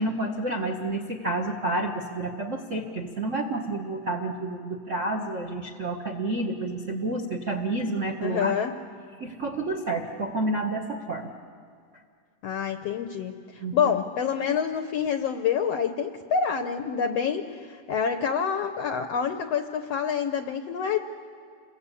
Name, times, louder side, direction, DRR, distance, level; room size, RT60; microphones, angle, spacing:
voice 1, 0.0-8.5 9.2-11.3 13.6-13.9, right 2 dB, 90° right, 2 dB, 0.6 m, -29 dB
voice 2, 8.2-8.7 12.4-21.0, left 7 dB, 75° left, 7 dB, 1.4 m, -27 dB
28.5 x 22.5 x 8.3 m, 2.2 s
omnidirectional pair, 3.8 m